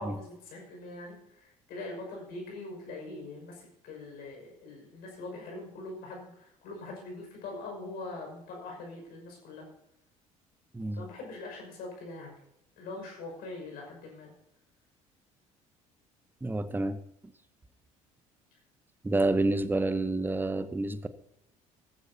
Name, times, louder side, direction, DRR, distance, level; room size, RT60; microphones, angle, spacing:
voice 1, 0.0-9.7 10.9-12.3 12.8-14.3, left 2 dB, 55° left, 1 dB, 5.9 m, -42 dB
voice 2, 10.7-11.0 16.4-17.0 19.0-21.1, right 2 dB, 10° right, 13 dB, 1.0 m, -28 dB
18.0 x 14.5 x 2.8 m, 0.81 s
figure-of-eight pair, 55°, 18 cm